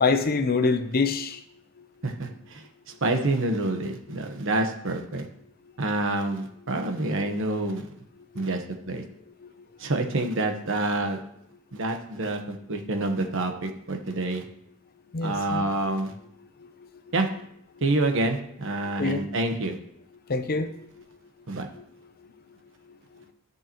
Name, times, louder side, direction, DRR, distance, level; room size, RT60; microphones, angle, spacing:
voice 1, 0.0-1.4 8.4-8.5 15.1-15.6 19.0-19.2 20.3-20.7, left 4 dB, 45° left, 9 dB, 0.7 m, -25 dB
voice 2, 2.0-2.6 3.0-5.3 5.8-7.9 8.3-9.0 9.8-11.2 11.7-14.4 15.2-16.1 17.1-17.3 17.8-19.8 21.5-21.7, right 2 dB, 60° right, 5 dB, 1.1 m, -27 dB
13.5 x 6.6 x 3.0 m, 0.72 s
head